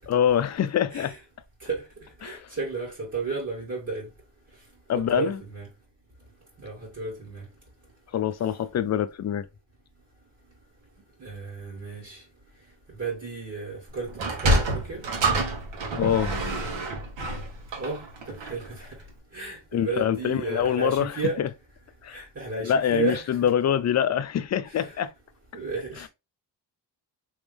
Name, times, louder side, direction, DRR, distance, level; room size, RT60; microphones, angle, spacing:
voice 1, 0.1-1.1 2.2-2.5 4.9-5.4 8.1-9.5 16.0-16.3 19.7-21.5 22.0-22.2 22.6-25.1 26.0-26.1, left 9 dB, 40° left, 0.5 m, -25 dB
voice 2, 2.2-4.0 4.9-5.7 6.6-7.5 11.2-12.2 13.0-14.1 14.4-15.0 17.8-18.0 18.3-18.9 19.3-21.4 22.1-23.4 24.7-25.0 25.5-26.1, right 4 dB, 35° right, 2.1 m, -33 dB
Sliding door, 14.1-18.7, right 1 dB, 85° right, 1.4 m, -27 dB
3.3 x 3.1 x 3.3 m
cardioid pair, 110°, 44 cm